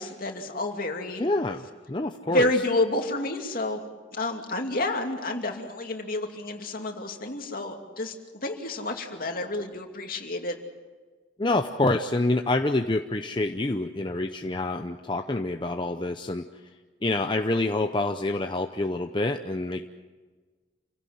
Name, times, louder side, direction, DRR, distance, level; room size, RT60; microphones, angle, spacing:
voice 1, 0.0-1.2 2.3-3.8 4.1-10.6, left 1 dB, 50° left, 3 dB, 2.6 m, -29 dB
voice 2, 1.2-2.5 11.4-16.4 17.0-19.8, left 2 dB, 25° left, 6 dB, 0.7 m, -27 dB
28.0 x 17.0 x 7.9 m, 1.4 s
head